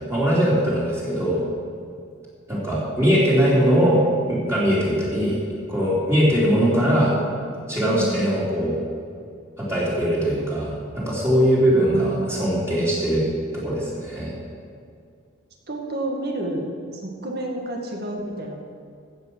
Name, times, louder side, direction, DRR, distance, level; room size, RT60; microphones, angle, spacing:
voice 1, 0.0-1.4 2.5-4.0 4.3-5.4 5.7-7.1 7.7-8.8 9.6-13.2 13.5-14.3, equal, 15° right, -8 dB, 3.5 m, -21 dB
voice 2, 7.9-8.3 11.7-12.7 15.7-16.6 16.9-18.6, right 1 dB, 50° right, 1 dB, 2.1 m, -30 dB
15.0 x 8.1 x 6.3 m, 2.3 s
head